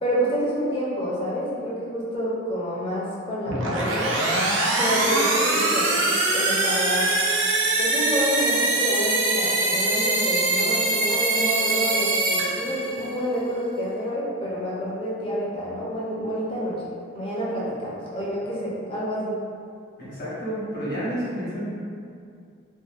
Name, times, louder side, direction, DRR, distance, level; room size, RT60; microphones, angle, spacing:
voice 1, 0.0-4.1 4.8-7.1 7.8-16.8 17.1-19.4, equal, 30° left, -7 dB, 0.5 m, -28 dB
sound 1, 3.5-13.2, right 2 dB, 75° right, 0.4 m, -23 dB
voice 2, 20.0-21.7, equal, 50° left, -10 dB, 0.9 m, -30 dB
2.6 x 2.0 x 2.4 m, 2.3 s
head